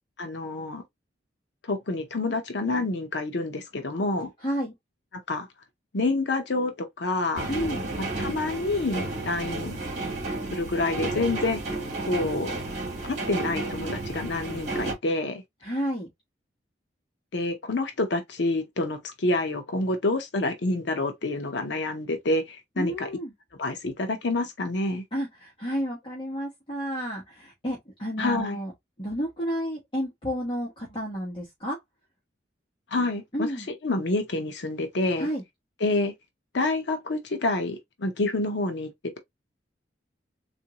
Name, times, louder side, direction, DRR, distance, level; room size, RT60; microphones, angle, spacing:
voice 1, 0.2-0.8 1.7-4.3 5.3-5.5 5.9-7.5 8.2-9.8 10.5-11.6 12.0-12.5 13.1-15.4 17.3-23.1 23.6-25.0 28.2-28.6 32.9-33.5 33.8-35.3 35.8-36.1 36.5-38.9, left 2 dB, 70° left, 0.7 m, -28 dB
voice 2, 4.4-4.7 7.5-7.9 15.6-16.1 22.8-23.3 25.1-28.7 29.0-31.8 33.3-33.7 35.2-35.4, equal, 30° left, 1.2 m, -31 dB
sound 1, 7.4-14.9, right 2 dB, 40° right, 1.4 m, -32 dB
3.6 x 2.5 x 2.9 m
head